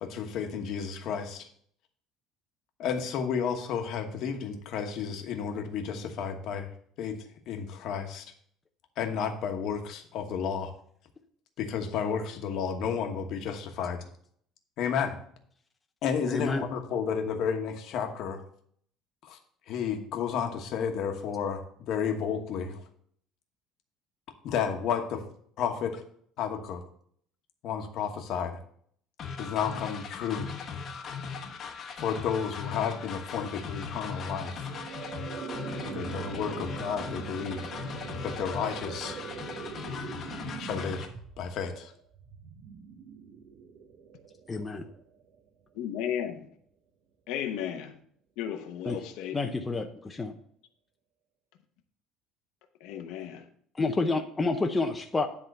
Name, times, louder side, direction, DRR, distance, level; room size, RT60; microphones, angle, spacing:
voice 1, 0.0-1.4 2.8-6.7 7.0-7.2 7.5-8.2 9.0-10.7 11.6-14.0 14.8-15.1 16.0-18.4 19.3-19.4 19.7-22.8 24.4-25.2 25.6-26.0 26.4-26.8 27.6-28.6 29.4-30.5 32.0-34.7 35.9-37.6 38.2-39.2 40.6-41.0 41.4-41.9, left 7 dB, 50° left, 1.2 m, -32 dB
voice 2, 16.3-16.6 44.5-44.8 48.9-49.0 49.3-50.3 53.8-55.3, left 3 dB, 15° left, 0.6 m, -29 dB
sound 1, 29.2-41.1, left 6 dB, 35° left, 1.0 m, -39 dB
sound 2, 34.4-45.5, right 5 dB, 60° right, 0.9 m, -42 dB
voice 3, 45.7-46.5 47.3-48.0 48.4-49.4 52.8-53.4, left 9 dB, 70° left, 0.9 m, -34 dB
10.5 x 3.7 x 6.6 m
cardioid pair, 165°, 0 cm